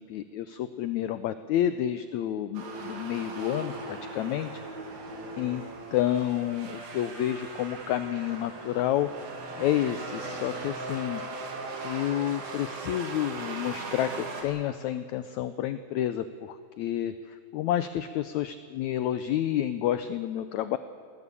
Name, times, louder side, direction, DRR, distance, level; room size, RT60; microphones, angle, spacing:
voice 1, 0.0-4.5 5.4-5.6 5.9-9.3 9.6-11.2 11.8-20.8, left 11 dB, 85° left, 12 dB, 1.6 m, -29 dB
sound 1, 2.5-14.4, right 3 dB, 85° right, 4.5 m, -39 dB
21.0 x 17.5 x 8.3 m, 2.5 s
omnidirectional pair, 4.0 m